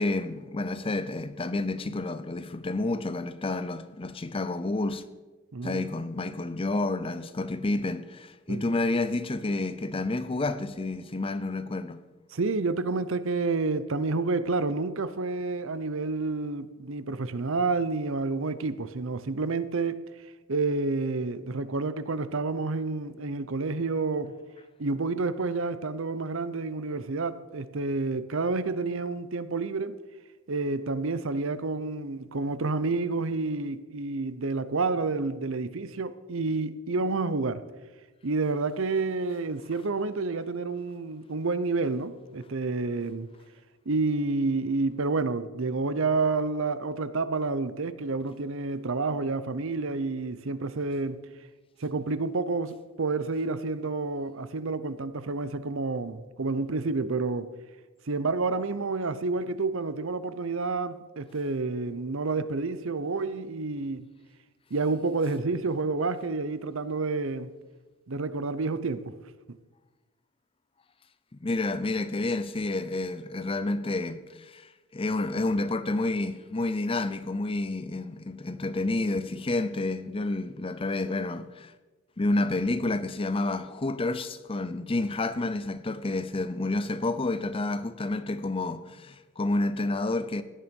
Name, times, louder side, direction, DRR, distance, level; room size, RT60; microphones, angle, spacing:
voice 1, 0.0-5.0 5.6-12.0 71.3-81.7 82.2-90.4, left 2 dB, 25° left, 0.5 m, -29 dB
voice 2, 5.5-5.8 8.5-8.7 12.3-20.0 20.5-24.4 24.8-30.0 30.5-37.6 38.2-43.3 43.9-51.2 51.8-57.5 58.1-64.1 64.7-67.5 68.1-69.1 69.5-69.6, right 3 dB, 65° right, 0.7 m, -29 dB
16.5 x 10.0 x 5.3 m
head